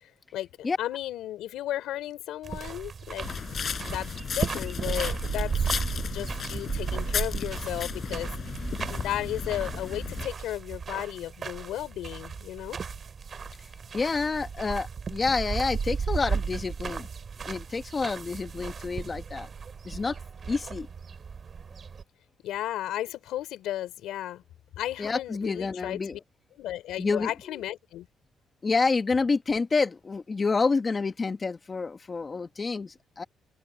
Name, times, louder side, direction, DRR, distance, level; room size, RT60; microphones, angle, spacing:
voice 1, 0.0-3.3 3.5-4.1 4.4-8.3 8.9-12.8 22.4-24.4 24.8-26.2 26.6-28.1, left 13 dB, 85° left, 3.4 m, -34 dB
sound 1, 2.4-22.0, right 6 dB, 45° right, 3.5 m, -35 dB
sound 2, 3.2-10.3, left 7 dB, 50° left, 4.6 m, -35 dB
voice 2, 13.9-17.1 17.4-19.5 19.8-20.2 20.5-20.9 25.0-26.2 27.0-27.6 28.6-33.2, left 4 dB, 30° left, 1.4 m, -28 dB
open air
cardioid pair, 90°, 0 cm